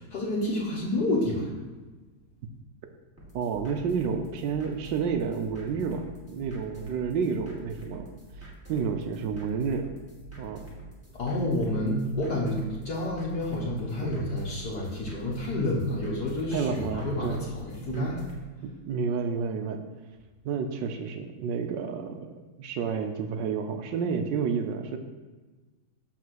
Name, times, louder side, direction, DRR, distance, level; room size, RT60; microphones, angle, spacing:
voice 1, 0.0-1.5 11.1-18.2, left 1 dB, 55° left, -4 dB, 1.6 m, -29 dB
sound 1, 3.2-18.4, right 1 dB, 5° right, 2.0 m, -46 dB
voice 2, 3.3-8.1 8.4-9.9 10.4-10.7 16.5-17.4 17.9-18.1 18.6-19.8 20.4-25.0, right 6 dB, 70° right, 7 dB, 1.2 m, -30 dB
7.2 x 4.1 x 6.2 m, 1.3 s
omnidirectional pair, 2.2 m